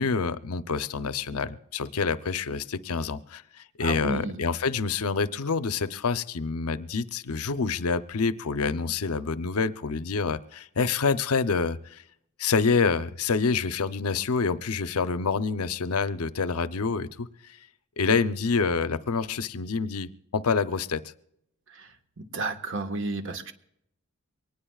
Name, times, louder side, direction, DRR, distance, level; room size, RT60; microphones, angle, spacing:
voice 1, 0.0-12.0 12.4-17.3 18.0-21.0, left 5 dB, 85° left, 13 dB, 0.7 m, -27 dB
voice 2, 3.8-4.3 22.3-23.5, right 3 dB, 60° right, 6 dB, 1.3 m, -31 dB
23.5 x 19.0 x 2.4 m, 0.76 s
head